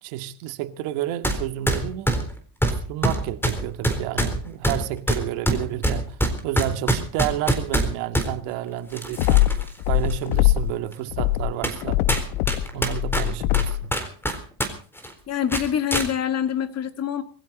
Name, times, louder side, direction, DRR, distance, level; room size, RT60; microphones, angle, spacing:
voice 1, 0.0-2.2 2.9-6.2 6.4-9.5 9.9-12.0 12.7-13.9, right 14 dB, 75° right, 2.2 m, -30 dB
sound 1, 1.2-1.4 1.7-8.3 8.9-9.7 10.1-10.2 10.9-11.0 11.6-11.8 12.1-14.7 15.0-15.1 15.5-16.1, equal, 5° left, 4.0 m, -24 dB
sound 2, 9.2-10.8 11.1-13.9, left 15 dB, 85° left, 1.0 m, -22 dB
voice 2, 15.3-17.2, left 9 dB, 35° left, 2.0 m, -25 dB
21.5 x 15.5 x 4.2 m
cardioid pair, 125°, 46 cm